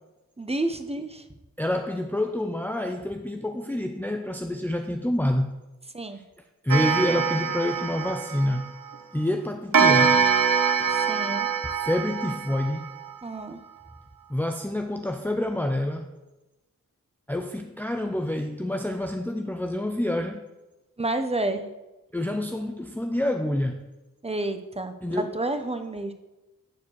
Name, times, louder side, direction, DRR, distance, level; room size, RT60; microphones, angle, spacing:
voice 1, 0.4-1.2 5.9-6.2 10.9-11.5 13.2-13.6 21.0-21.7 24.2-26.1, right 2 dB, 20° right, 0.8 m, -30 dB
voice 2, 1.6-5.6 6.6-8.7 9.1-10.2 10.8-10.9 11.8-12.9 14.3-16.1 17.3-20.4 22.1-23.8 25.0-25.4, left 1 dB, 5° left, 0.5 m, -27 dB
Clock, 6.7-9.0 9.7-13.1, right 6 dB, 85° right, 0.8 m, -24 dB
9.6 x 4.4 x 6.6 m
wide cardioid pair, 60°, 33 cm